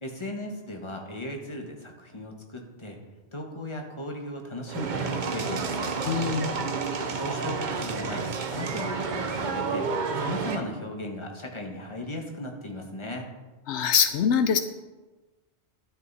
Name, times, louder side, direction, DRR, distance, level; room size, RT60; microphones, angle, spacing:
voice 1, 0.0-3.0 3.3-6.0 7.1-9.9 10.2-13.3, left 1 dB, 25° left, 2 dB, 1.4 m, -37 dB
sound 1, 4.7-10.6, right 4 dB, 50° right, 0.8 m, -30 dB
voice 2, 6.1-6.5 13.7-14.6, left 7 dB, 80° left, 10 dB, 0.9 m, -23 dB
12.0 x 7.1 x 4.1 m, 1.2 s
omnidirectional pair, 1.1 m